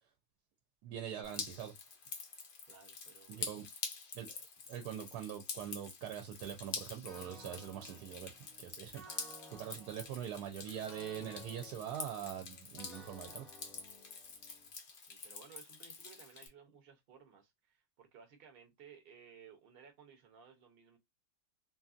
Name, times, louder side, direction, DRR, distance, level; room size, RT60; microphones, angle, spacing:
voice 1, 0.8-1.7 3.3-3.7 4.1-4.4 4.7-8.3 8.6-13.5, right 10 dB, 75° right, 1.1 m, -43 dB
Drip, 1.2-16.5, left 5 dB, 70° left, 0.5 m, -47 dB
voice 2, 2.7-3.7 14.9-21.0, right 7 dB, 50° right, 0.7 m, -59 dB
sound 1, 7.1-14.7, equal, ahead, 0.4 m, -57 dB
2.7 x 2.6 x 2.4 m
omnidirectional pair, 1.8 m